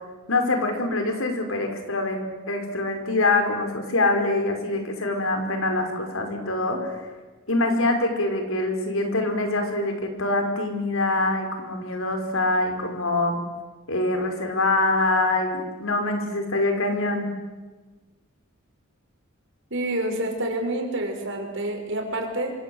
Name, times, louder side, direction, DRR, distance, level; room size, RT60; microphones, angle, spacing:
voice 1, 0.3-7.0 7.5-13.4 13.9-17.3, left 2 dB, 65° left, 5 dB, 5.4 m, -24 dB
voice 2, 19.7-22.5, right 1 dB, 60° right, 3 dB, 6.1 m, -28 dB
26.5 x 26.5 x 8.1 m, 1.3 s
head